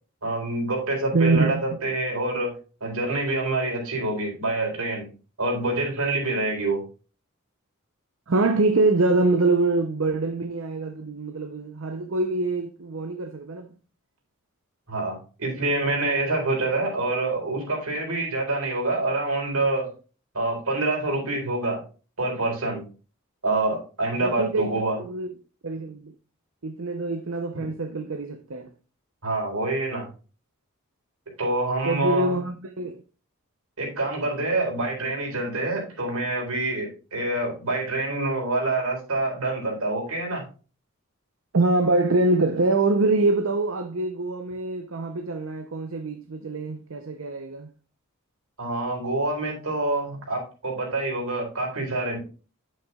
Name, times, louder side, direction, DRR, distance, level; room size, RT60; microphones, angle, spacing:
voice 1, 0.2-2.6 2.8-5.1 5.4-6.8 14.9-19.9 20.3-21.8 22.2-22.8 23.4-25.0 27.5-27.6 29.2-30.1 31.4-32.4 33.8-40.4 48.6-52.2, right 2 dB, 80° right, 4.2 m, -26 dB
voice 2, 1.1-1.8 8.3-13.7 24.2-24.7 25.0-25.3 25.6-26.1 26.6-28.7 31.9-33.0 41.5-47.7, right 2 dB, 65° right, 0.7 m, -24 dB
9.2 x 8.0 x 2.4 m
head